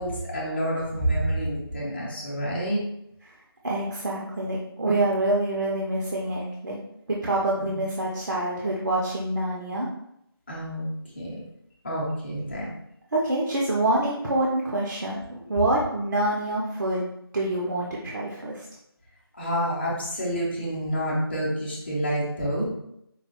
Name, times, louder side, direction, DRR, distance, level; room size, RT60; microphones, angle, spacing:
voice 1, 0.0-2.8 7.6-7.7 10.5-11.3 11.8-12.7 19.4-22.6, equal, 25° left, -6 dB, 0.8 m, -28 dB
voice 2, 3.6-6.8 7.1-9.9 13.1-18.7, right 1 dB, 50° right, -3 dB, 0.6 m, -26 dB
4.6 x 2.4 x 2.9 m, 0.78 s
figure-of-eight pair, 175°, 13 cm